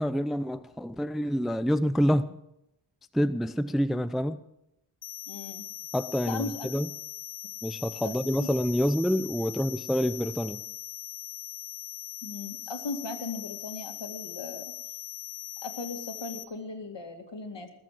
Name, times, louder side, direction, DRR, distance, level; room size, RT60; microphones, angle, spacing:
voice 1, 0.0-2.3 3.1-4.4 5.9-6.9 7.6-10.6, equal, ahead, 0.6 m, -27 dB
sound 1, 5.0-16.4, left 14 dB, 85° left, 0.9 m, -41 dB
voice 2, 5.3-5.6 6.3-6.7 8.0-8.1 8.4-8.5 12.2-14.7 15.6-17.7, left 3 dB, 60° left, 2.5 m, -37 dB
19.5 x 7.8 x 7.6 m
cardioid pair, 60°, 49 cm